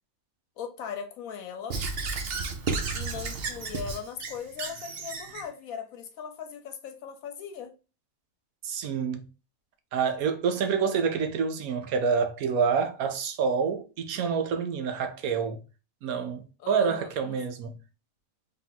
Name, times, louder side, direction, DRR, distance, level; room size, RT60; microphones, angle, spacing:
voice 1, 0.6-1.8 2.9-7.7 16.6-17.4, left 7 dB, 80° left, 1.2 m, -39 dB
Squeak / Writing, 1.7-5.5, right 4 dB, 55° right, 0.8 m, -33 dB
voice 2, 8.6-9.3 9.9-15.6 16.0-17.8, right 6 dB, 85° right, 1.2 m, -27 dB
3.5 x 2.9 x 3.8 m
omnidirectional pair, 1.5 m